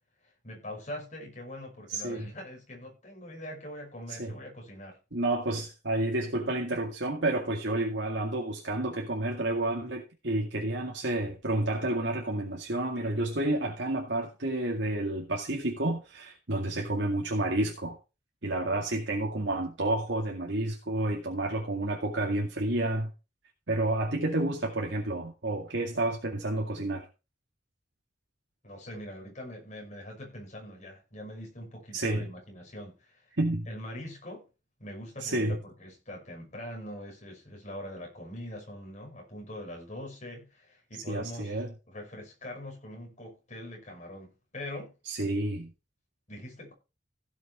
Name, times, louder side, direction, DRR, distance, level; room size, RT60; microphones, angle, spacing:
voice 1, 0.4-5.0 28.6-33.3 33.7-34.4 34.8-41.6 41.9-44.9 46.3-46.7, left 1 dB, 40° left, 5.8 m, -43 dB
voice 2, 1.9-2.3 4.1-4.3 5.1-18.0 18.4-23.1 23.7-27.1 31.9-32.3 33.4-33.7 35.2-35.6 41.1-41.7 45.1-45.7, right 2 dB, 70° right, 2.1 m, -30 dB
16.0 x 6.5 x 4.3 m
head